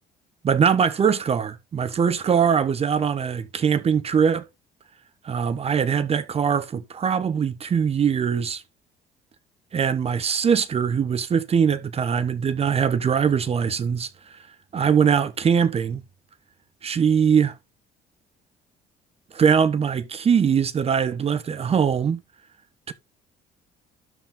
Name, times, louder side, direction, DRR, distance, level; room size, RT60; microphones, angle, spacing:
voice 1, 0.4-4.4 5.2-8.6 9.7-14.4 14.7-16.0 16.8-17.6 19.3-22.2 22.9-23.0, right 7 dB, 35° right, 1.0 m, -22 dB
12.5 x 4.3 x 3.8 m
cardioid pair, 110°, 17 cm